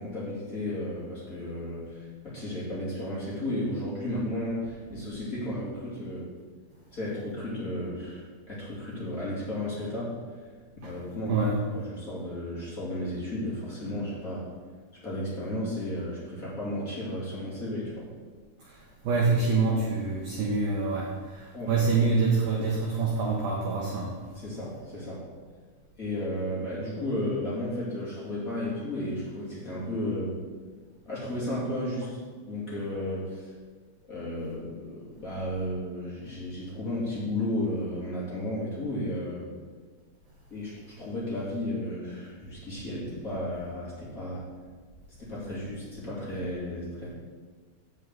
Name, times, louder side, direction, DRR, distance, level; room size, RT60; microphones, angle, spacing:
voice 1, 0.0-6.3 6.9-10.2 10.8-14.5 15.0-18.1 21.5-21.9 24.3-25.3 26.0-30.4 31.0-32.2 32.5-33.5 34.1-39.5 40.5-44.5 45.2-47.1, left 1 dB, 35° left, -7 dB, 1.4 m, -33 dB
voice 2, 18.6-24.2, right 4 dB, 85° right, -2 dB, 2.0 m, -26 dB
8.6 x 5.5 x 7.8 m, 1.5 s
omnidirectional pair, 6.0 m